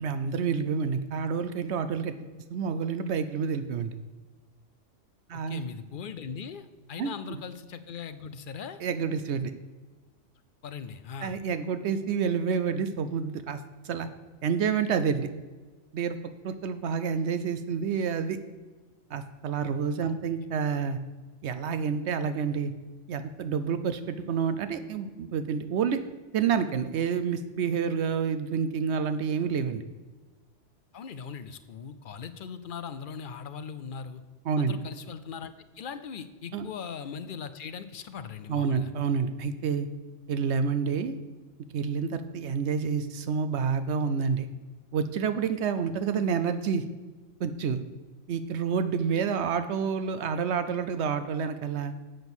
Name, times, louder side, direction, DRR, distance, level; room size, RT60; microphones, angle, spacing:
voice 1, 0.0-2.1 2.5-3.9 5.3-5.6 7.0-7.1 8.8-9.5 11.2-13.6 13.8-14.1 14.4-15.3 15.9-16.2 16.4-18.4 19.1-21.0 21.4-22.7 23.1-26.0 26.3-29.8 34.5-34.7 36.5-36.7 38.5-39.9 40.3-41.2 41.7-44.5 44.9-46.8 47.4-47.8 48.3-51.9, right 6 dB, 70° right, 11 dB, 0.8 m, -28 dB
voice 2, 5.3-8.8 10.6-11.4 20.0-20.2 30.9-34.2 34.6-38.9 45.9-46.0, left 6 dB, 60° left, 11 dB, 0.6 m, -40 dB
7.8 x 6.1 x 7.0 m, 1.3 s
omnidirectional pair, 1.3 m